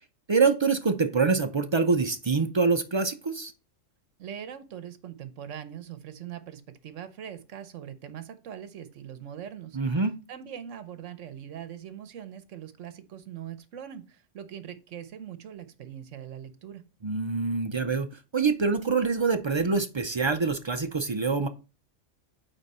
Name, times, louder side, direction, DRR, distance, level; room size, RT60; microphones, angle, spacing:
voice 1, 0.3-3.5 9.7-10.1 17.0-21.5, right 4 dB, 50° right, 0.3 m, -25 dB
voice 2, 4.2-9.8 10.3-16.8, right 9 dB, 70° right, 1.2 m, -41 dB
8.8 x 4.0 x 4.2 m
omnidirectional pair, 1.3 m